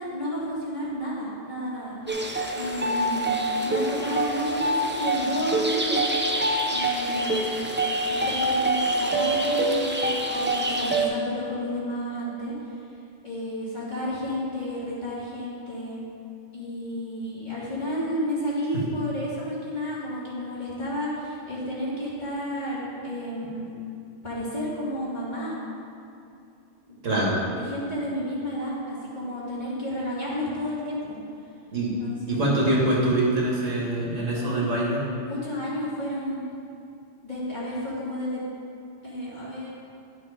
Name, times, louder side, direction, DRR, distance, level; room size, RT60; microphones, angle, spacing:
voice 1, 0.0-6.0 6.7-7.8 8.0-12.5 13.2-16.0 16.5-23.7 24.2-25.5 26.9-27.4 27.6-31.2 32.0-32.5 34.3-34.7 35.2-36.4 37.2-38.4 39.0-39.7, equal, 35° left, -8 dB, 2.5 m, -32 dB
sound 1, 2.1-11.1, right 1 dB, 15° right, 0.5 m, -25 dB
voice 2, 27.0-27.4 31.7-31.9 32.3-35.0, right 1 dB, 80° right, -4 dB, 2.1 m, -24 dB
11.5 x 6.0 x 5.0 m, 2.6 s
omnidirectional pair, 1.3 m